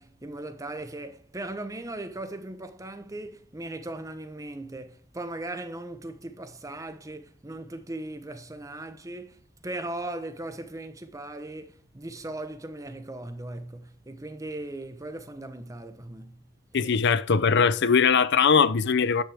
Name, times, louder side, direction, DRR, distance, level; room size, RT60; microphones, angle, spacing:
voice 1, 0.0-16.4 16.8-17.1, right 2 dB, 15° right, 0.9 m, -38 dB
voice 2, 16.7-19.2, left 6 dB, 55° left, 0.6 m, -21 dB
10.0 x 8.8 x 3.5 m
head